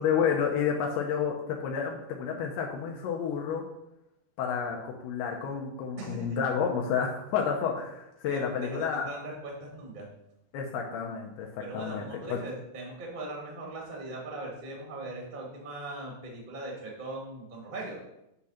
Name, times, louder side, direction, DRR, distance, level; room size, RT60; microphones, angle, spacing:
voice 1, 0.0-3.6 4.4-9.1 10.5-11.5 11.7-12.4, left 7 dB, 80° left, 0 dB, 2.8 m, -30 dB
voice 2, 8.2-10.1 11.6-18.0, right 2 dB, 50° right, -2 dB, 0.5 m, -40 dB
9.7 x 3.7 x 5.7 m, 0.87 s
omnidirectional pair, 4.7 m